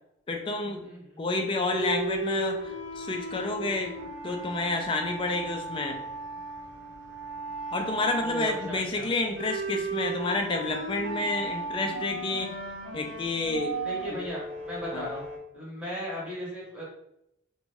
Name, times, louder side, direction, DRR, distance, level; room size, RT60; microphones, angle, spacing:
voice 1, 0.3-0.9 1.2-3.9 4.2-6.0 7.7-12.6 12.9-13.8 14.1-14.2 14.9-15.1, left 2 dB, 25° left, 3 dB, 0.3 m, -30 dB
voice 2, 0.8-1.2 8.2-9.1 13.8-15.2 15.5-16.8, equal, 5° right, -6 dB, 0.8 m, -37 dB
sound 1, 1.7-15.4, right 2 dB, 85° right, 0.8 m, -36 dB
2.5 x 2.2 x 3.1 m, 0.80 s
head